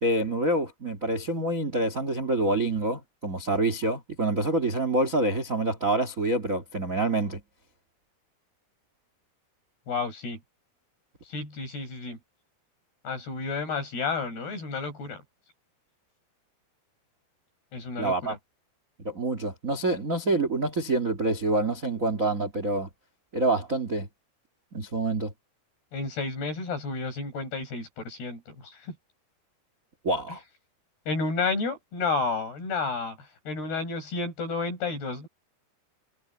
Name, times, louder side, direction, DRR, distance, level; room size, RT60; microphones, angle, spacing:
voice 1, 0.0-7.4 18.0-18.3 19.0-22.9 23.3-24.1 24.7-25.3 30.0-30.4, right 2 dB, 45° right, 1.0 m, -26 dB
voice 2, 9.9-10.4 11.2-12.2 13.0-15.2 17.7-18.4 25.9-29.0 30.3-30.4 31.1-35.3, left 4 dB, 70° left, 8.9 m, -31 dB
omnidirectional pair, 4.8 m